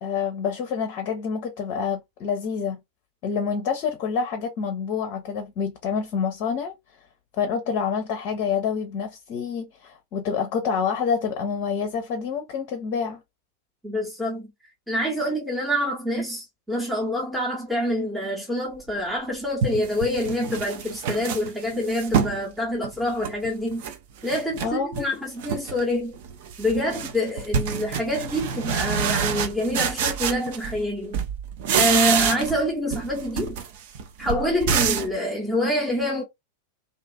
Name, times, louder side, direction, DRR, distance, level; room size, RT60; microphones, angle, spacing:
voice 1, 0.0-2.8 3.2-6.7 7.4-13.2 24.6-25.1, left 6 dB, 40° left, 0.6 m, -27 dB
voice 2, 13.8-14.5 14.9-23.9 24.2-26.2 26.6-31.1 31.7-33.6 34.2-36.2, left 1 dB, ahead, 0.8 m, -26 dB
sound 1, 19.0-19.1 19.6-22.4 22.8-24.0 24.2-25.1 25.4-25.8 26.1-30.9 31.1-32.6 32.9-35.2, right 7 dB, 50° right, 0.5 m, -27 dB
2.6 x 2.4 x 2.2 m
figure-of-eight pair, 90°, 0 cm